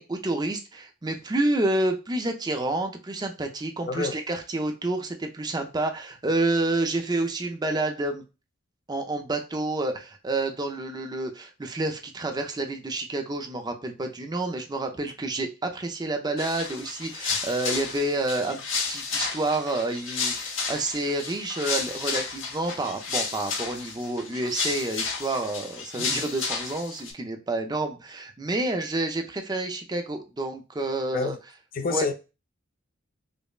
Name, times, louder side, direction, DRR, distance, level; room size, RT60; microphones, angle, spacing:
voice 1, 0.0-8.2 8.9-18.6 18.9-31.3 31.9-32.1, right 2 dB, 20° right, 0.5 m, -29 dB
voice 2, 3.9-4.2 26.0-26.1 31.1-31.4 31.7-32.1, left 4 dB, 45° left, 0.5 m, -28 dB
sound 1, 16.4-27.1, left 5 dB, 65° left, 0.8 m, -32 dB
5.2 x 2.0 x 2.4 m
head